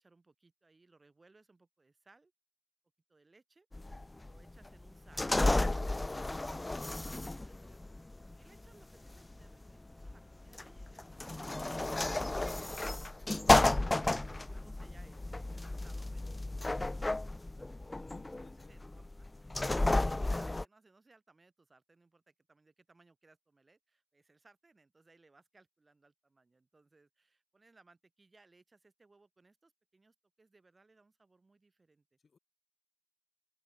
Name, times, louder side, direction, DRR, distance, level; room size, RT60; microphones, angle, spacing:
voice 1, 0.0-2.3 3.1-3.7 4.2-12.9 13.3-17.7 18.3-32.2, right 3 dB, 25° right, 7.7 m, -65 dB
sound 1, 3.7-20.6, left 2 dB, 15° left, 0.4 m, -33 dB
voice 2, 18.0-18.8 32.2-32.4, left 5 dB, 35° left, 4.2 m, -60 dB
open air
wide cardioid pair, 140°, 0 cm